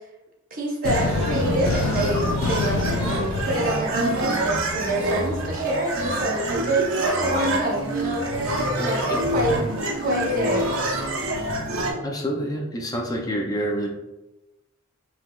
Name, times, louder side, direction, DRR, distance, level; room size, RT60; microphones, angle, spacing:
voice 1, 0.5-8.3 8.8-9.6 10.0-10.7, right 1 dB, 45° right, -1 dB, 0.9 m, -27 dB
sound 1, 0.8-4.8, left 3 dB, 80° left, 0.4 m, -27 dB
sound 2, 0.8-11.9, right 1 dB, 90° right, 0.9 m, -26 dB
sound 3, 7.0-7.5 8.4-8.7 10.4-10.7, left 2 dB, 55° left, 0.9 m, -34 dB
voice 2, 12.0-13.9, equal, 20° left, 0 dB, 0.4 m, -27 dB
5.5 x 3.0 x 2.3 m, 1.0 s
head